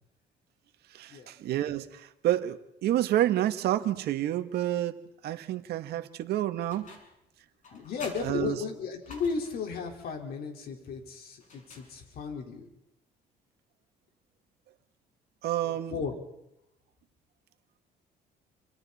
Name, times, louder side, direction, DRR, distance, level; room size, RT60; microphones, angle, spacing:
voice 1, 0.9-6.9 8.2-8.6 15.4-16.0, right 13 dB, 75° right, 1.6 m, -29 dB
sound 1, 6.7-7.2 7.6-9.7 11.4-12.3, left 3 dB, 50° left, 6.8 m, -49 dB
voice 2, 7.7-12.7 15.6-16.2, left 5 dB, 65° left, 4.4 m, -35 dB
29.5 x 26.5 x 4.3 m
cardioid pair, 110°, 17 cm